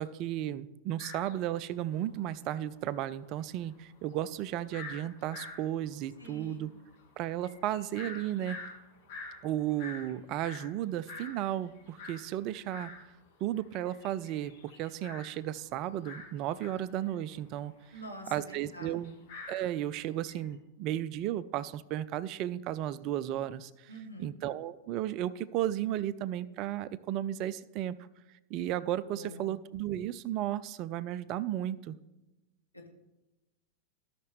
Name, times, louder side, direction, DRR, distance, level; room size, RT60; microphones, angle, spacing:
voice 1, 0.0-6.7 7.2-8.6 9.4-12.9 13.4-17.7 18.3-19.2 19.5-23.9 24.2-28.0 28.5-32.0, right 12 dB, 40° right, 17 dB, 0.3 m, -34 dB
sound 1, 1.0-2.2 2.5-2.6 2.8-13.0 13.4-20.5, left 3 dB, 50° left, 2.3 m, -47 dB
voice 2, 6.2-6.6 17.9-19.0 23.9-24.3 29.1-29.5 32.7-32.9, equal, 85° left, -1 dB, 1.5 m, -46 dB
16.0 x 5.8 x 3.1 m, 1.0 s
figure-of-eight pair, 90°, 0 cm